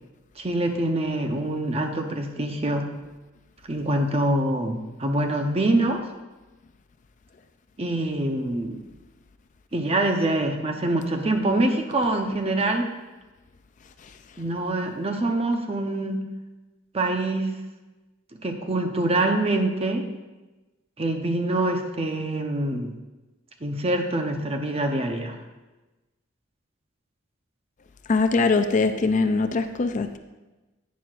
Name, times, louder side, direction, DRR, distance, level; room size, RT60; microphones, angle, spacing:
voice 1, 0.4-2.9 3.7-6.0 7.8-8.8 9.7-12.9 14.4-16.2 16.9-17.5 18.4-20.0 21.0-22.9 23.6-25.4, right 1 dB, 30° right, 4 dB, 0.8 m, -25 dB
voice 2, 28.1-30.2, left 3 dB, 40° left, 8 dB, 0.4 m, -22 dB
11.0 x 9.3 x 2.5 m, 1.1 s
head